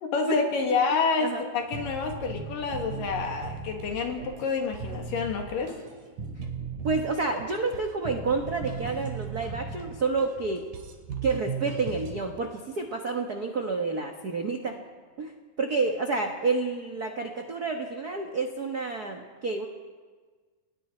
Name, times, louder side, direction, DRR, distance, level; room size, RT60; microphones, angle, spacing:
voice 1, 0.0-5.8, left 5 dB, 75° left, 3 dB, 3.5 m, -28 dB
sound 1, 1.7-12.2, right 5 dB, 65° right, 3.8 m, -37 dB
voice 2, 6.8-10.6 11.2-14.8 15.2-15.3 15.6-19.7, right 4 dB, 85° right, 3 dB, 0.8 m, -29 dB
30.0 x 19.5 x 4.4 m, 1.5 s
omnidirectional pair, 4.0 m